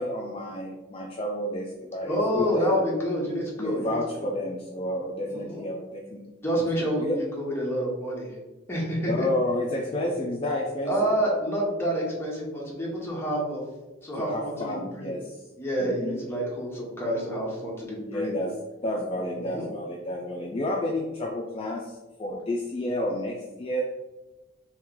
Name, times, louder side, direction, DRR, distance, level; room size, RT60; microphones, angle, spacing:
voice 1, 0.0-2.8 3.6-6.2 6.8-7.2 9.1-11.1 14.2-15.4 15.8-16.2 18.1-18.5 18.8-23.8, left 1 dB, 30° left, -1 dB, 0.3 m, -30 dB
voice 2, 2.0-4.3 5.3-5.6 6.4-8.3 8.7-9.3 10.8-13.6 14.0-14.5 14.9-15.2 15.6-18.3 19.3-19.7, equal, 10° left, -4 dB, 0.9 m, -28 dB
3.0 x 2.9 x 3.6 m, 1.1 s
head